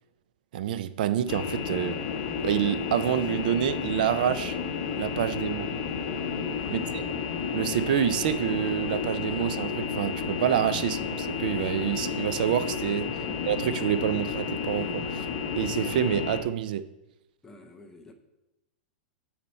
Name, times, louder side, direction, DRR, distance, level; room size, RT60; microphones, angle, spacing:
voice 1, 0.5-2.0 2.4-4.6 5.0-5.7 6.7-7.0 7.5-13.1 13.4-15.3 15.6-16.8, right 10 dB, 55° right, 0.4 m, -27 dB
sound 1, 1.3-16.4, left 6 dB, 45° left, 0.9 m, -32 dB
voice 2, 6.6-7.0 10.7-10.9 17.4-18.1, left 2 dB, 5° left, 0.6 m, -46 dB
9.6 x 4.2 x 4.3 m
supercardioid pair, 170°, 6 cm